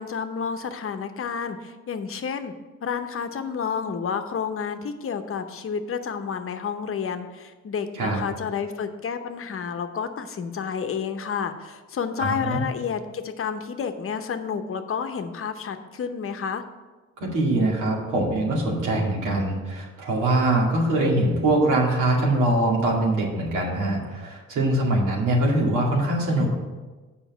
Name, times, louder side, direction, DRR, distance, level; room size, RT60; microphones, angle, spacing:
voice 1, 0.0-2.5 2.8-16.6, left 6 dB, 45° left, 8 dB, 0.8 m, -30 dB
voice 2, 12.2-12.6 17.2-26.5, right 1 dB, 85° right, -1 dB, 2.2 m, -23 dB
7.0 x 5.4 x 7.1 m, 1.3 s
cardioid pair, 90°, 30 cm